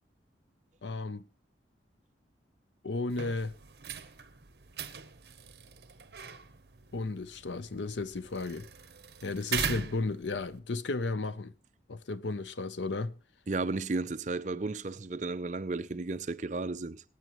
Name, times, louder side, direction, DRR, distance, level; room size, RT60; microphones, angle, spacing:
voice 1, 0.8-1.2 2.8-3.5 6.9-8.7 9.2-11.5 11.9-13.1, left 3 dB, 90° left, 0.7 m, -34 dB
sound 1, 3.1-10.6, right 7 dB, 65° right, 0.9 m, -41 dB
voice 2, 13.5-17.0, right 3 dB, 40° right, 0.6 m, -33 dB
25.0 x 9.1 x 3.1 m
head